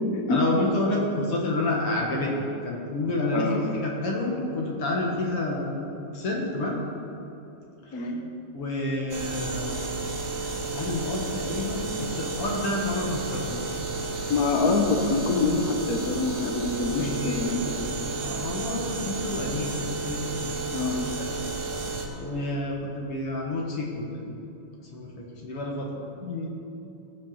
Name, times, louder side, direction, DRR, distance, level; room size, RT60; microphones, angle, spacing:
voice 1, 0.3-5.8 6.1-6.8 8.5-9.7 10.2-10.4 10.7-13.6 16.9-17.6 18.2-20.6 21.0-21.4 22.2-24.4 24.9-26.0, left 2 dB, 50° left, -1 dB, 2.1 m, -29 dB
sound 1, 9.1-22.1, right 3 dB, 55° right, 0.8 m, -32 dB
voice 2, 14.3-17.8 20.7-21.0 26.2-26.5, left 3 dB, 90° left, 3 dB, 0.7 m, -26 dB
17.0 x 6.4 x 7.3 m, 2.9 s
omnidirectional pair, 3.8 m